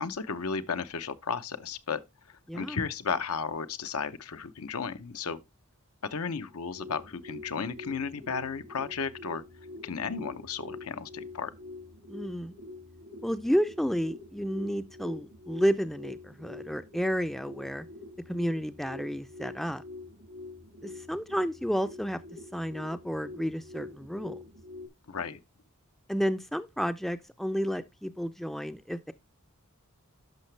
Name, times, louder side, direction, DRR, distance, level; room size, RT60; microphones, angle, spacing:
voice 1, 0.0-2.0 2.3-5.4 6.0-9.4 9.8-11.5 25.1-25.4, left 5 dB, 75° left, 0.8 m, -34 dB
voice 2, 2.5-2.8 12.1-12.5 13.2-17.9 18.3-19.8 20.8-22.2 22.5-24.4 26.1-29.1, equal, ahead, 0.4 m, -31 dB
sound 1, 6.5-24.9, left 2 dB, 85° right, 1.8 m, -46 dB
11.5 x 5.8 x 3.3 m
head